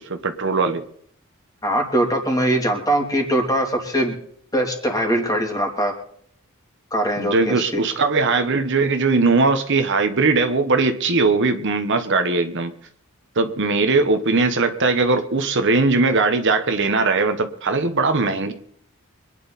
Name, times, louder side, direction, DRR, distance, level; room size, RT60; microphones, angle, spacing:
voice 1, 0.1-0.8 7.2-12.7 13.4-18.5, right 3 dB, 55° right, 8 dB, 1.2 m, -20 dB
voice 2, 1.6-4.1 4.5-5.9 6.9-7.8, right 1 dB, 15° left, 1 dB, 3.0 m, -21 dB
25.0 x 10.5 x 4.2 m, 0.65 s
head